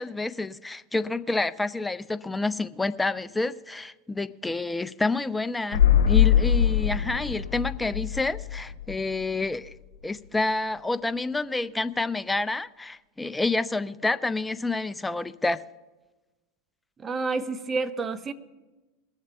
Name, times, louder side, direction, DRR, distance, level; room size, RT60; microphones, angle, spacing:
voice 1, 0.0-9.7 10.0-15.6, left 2 dB, 10° left, 0.4 m, -28 dB
sound 1, 5.7-9.5 9.7-9.8, left 9 dB, 70° left, 0.9 m, -22 dB
voice 2, 17.0-18.3, right 4 dB, 20° right, 0.9 m, -29 dB
20.5 x 7.4 x 5.8 m
hypercardioid pair, 90°, 0 cm